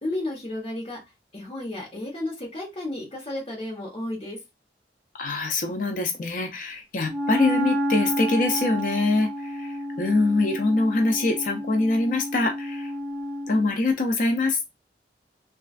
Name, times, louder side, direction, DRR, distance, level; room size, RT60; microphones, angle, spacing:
voice 1, 0.0-1.0 1.3-4.4, left 1 dB, 35° left, -3 dB, 1.1 m, -32 dB
voice 2, 5.1-12.9 13.5-14.6, left 2 dB, 50° left, 4 dB, 0.4 m, -24 dB
Wind instrument woodwind instrument, 7.1-13.7, equal, 10° right, 0.4 m, -30 dB
3.1 x 2.4 x 2.4 m, 0.22 s
head